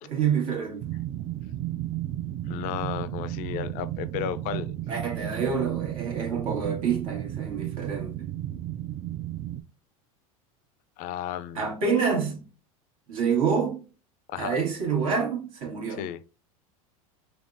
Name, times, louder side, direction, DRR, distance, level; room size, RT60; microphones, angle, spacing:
voice 1, 0.0-0.8 4.9-8.3 11.6-12.5 13.1-13.8 14.4-16.1, right 6 dB, 80° right, 1.8 m, -27 dB
sound 1, 0.8-9.6, right 13 dB, 35° right, 0.4 m, -33 dB
voice 2, 2.5-4.7 11.0-11.6 14.3-14.6 16.0-16.2, left 10 dB, 50° left, 0.4 m, -33 dB
3.7 x 3.5 x 2.6 m
hypercardioid pair, 105°, 18 cm